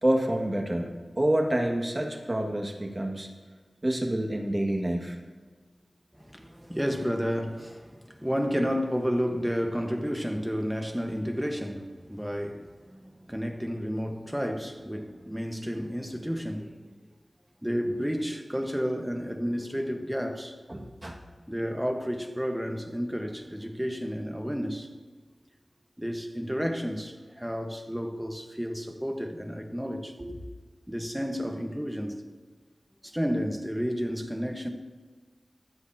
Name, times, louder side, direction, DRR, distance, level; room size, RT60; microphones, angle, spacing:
voice 1, 0.0-3.3 3.8-5.2 20.7-21.2 30.2-30.3, right 1 dB, 30° right, 1.9 m, -28 dB
voice 2, 6.2-17.0 17.6-20.6 21.5-24.9 26.0-30.1 30.9-32.2 33.0-34.7, equal, 5° right, 1.2 m, -31 dB
24.0 x 8.0 x 2.8 m
wide cardioid pair, 60°, 0 cm